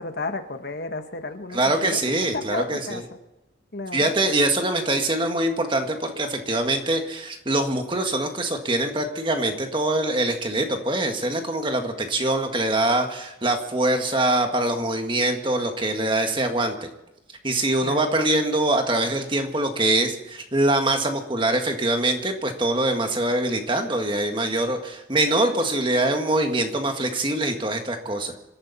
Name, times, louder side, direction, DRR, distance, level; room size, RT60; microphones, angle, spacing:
voice 1, 0.0-2.0 2.3-3.0 3.7-4.1 17.8-18.0, left 3 dB, 55° left, 7 dB, 1.3 m, -32 dB
voice 2, 1.5-3.0 3.9-16.9 17.4-28.3, right 2 dB, 25° right, 5 dB, 1.7 m, -23 dB
27.0 x 13.0 x 4.1 m, 0.91 s
head